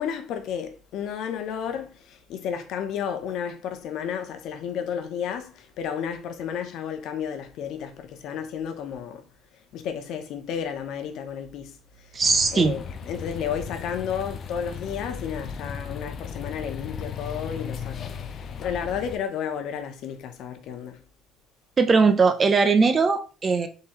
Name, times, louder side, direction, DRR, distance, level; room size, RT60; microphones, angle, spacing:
voice 1, 0.0-9.2 9.7-12.2 12.5-21.0, left 8 dB, 65° left, 0.8 m, -32 dB
voice 2, 12.1-12.8 21.8-23.7, right 4 dB, 25° right, 0.5 m, -20 dB
sound 1, 12.2-19.2, left 6 dB, 40° left, 0.4 m, -36 dB
3.8 x 2.8 x 4.2 m
cardioid pair, 155°, 0 cm